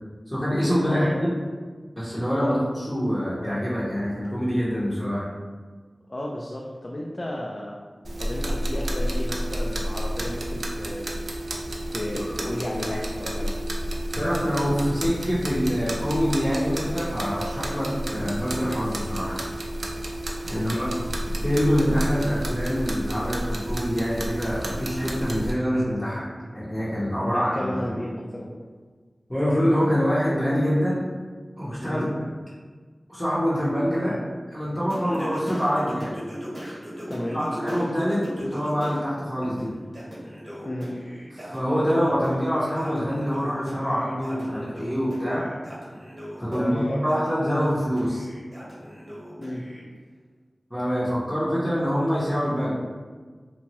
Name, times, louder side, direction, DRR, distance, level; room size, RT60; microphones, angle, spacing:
voice 1, 0.3-1.3 2.0-5.3 14.1-19.4 20.5-20.9 21.3-26.3 26.5-27.9 29.3-31.0 31.6-32.0 33.1-34.2 34.5-36.2 37.3-39.7 41.3-45.5 46.4-48.3 50.7-52.8, equal, 10° left, -10 dB, 0.7 m, -25 dB
voice 2, 0.9-1.3 2.4-2.6 6.1-7.8 8.2-11.1 11.9-13.6 18.0-18.3 20.5-20.9 27.2-28.6 31.8-32.1 34.0-34.2 37.1-37.4 40.6-40.9 46.5-47.0 49.4-49.6, left 1 dB, 40° left, -2 dB, 0.3 m, -33 dB
sound 1, 8.0-25.5, right 1 dB, 80° right, 0.4 m, -30 dB
Singing, 34.9-39.0 39.4-49.8, equal, 30° right, 1.0 m, -38 dB
2.8 x 2.2 x 2.9 m, 1.5 s
wide cardioid pair, 65°, 0 cm